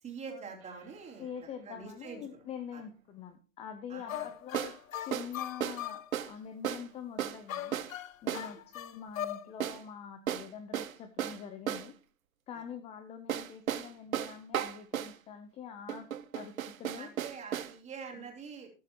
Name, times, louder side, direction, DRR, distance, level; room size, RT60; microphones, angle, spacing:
voice 1, 0.0-1.3 1.6-2.2 2.7-2.8 3.9-4.3 8.4-8.5 12.5-12.6 16.9-18.7, right 6 dB, 15° right, 0 dB, 3.2 m, -45 dB
sound 1, 0.6-0.7 4.5-4.8 5.1-5.3 5.6-5.8 6.1-6.3 6.6-6.9 7.2-7.4 7.7-7.9 8.3-8.5 9.6-9.8 10.3-11.9 13.3-15.2 15.9-17.7, right 10 dB, 90° right, 1.0 m, -35 dB
voice 2, 1.2-7.8 8.2-11.9 12.5-16.1 16.3-17.1 18.2-18.3, left 7 dB, 15° left, 10 dB, 0.6 m, -45 dB
sound 2, 4.1-6.1 7.5-9.5, left 11 dB, 75° left, 0.9 m, -39 dB
14.0 x 11.5 x 3.0 m, 0.35 s
hypercardioid pair, 135°, 40 cm